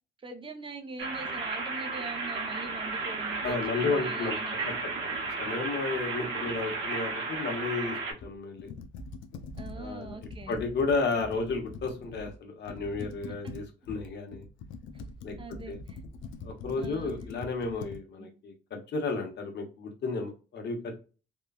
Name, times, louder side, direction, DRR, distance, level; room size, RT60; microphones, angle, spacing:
voice 1, 0.2-4.7 9.5-10.6 13.0-13.5 15.4-16.0 16.8-17.1 18.2-18.3, right 3 dB, 25° right, 6 dB, 0.7 m, -43 dB
sound 1, 1.0-8.1, right 3 dB, 90° right, 0.8 m, -34 dB
voice 2, 3.4-4.4 4.6-4.7 5.0-5.1 5.4-8.7 9.8-10.2 10.5-14.4 15.2-15.4 15.7-15.8 16.4-20.9, left 4 dB, 60° left, 3 dB, 1.0 m, -32 dB
Computer keyboard, 8.2-12.3 12.6-18.0, left 3 dB, 75° left, 0.4 m, -43 dB
3.0 x 2.3 x 2.3 m, 0.34 s
cardioid pair, 90°, 20 cm